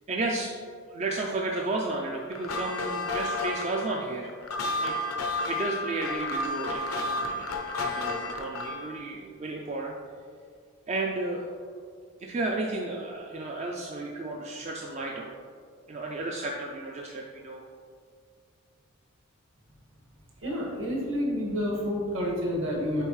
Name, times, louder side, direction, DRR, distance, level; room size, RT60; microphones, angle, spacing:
voice 1, 0.1-0.6 0.9-4.3 4.7-5.0 5.5-9.9 10.9-11.5 12.2-15.3 15.9-17.6, right 2 dB, 30° right, 0 dB, 0.3 m, -33 dB
sound 1, 2.3-8.9, left 2 dB, 80° left, 0.7 m, -31 dB
voice 2, 20.4-23.0, equal, 65° right, -2 dB, 1.5 m, -29 dB
6.6 x 4.5 x 3.1 m, 2.1 s
head